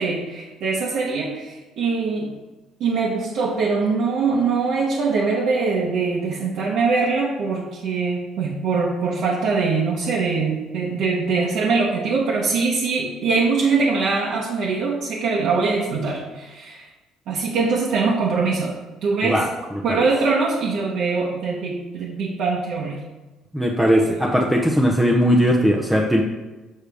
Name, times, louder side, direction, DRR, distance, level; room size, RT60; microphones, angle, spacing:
voice 1, 0.0-2.3 2.8-16.9 17.3-18.7 19.0-19.5 19.8-23.0, right 4 dB, 65° right, -4 dB, 1.0 m, -22 dB
voice 2, 23.5-26.2, equal, 5° right, -1 dB, 0.6 m, -18 dB
6.7 x 6.4 x 3.4 m, 1.1 s
cardioid pair, 150°, 0 cm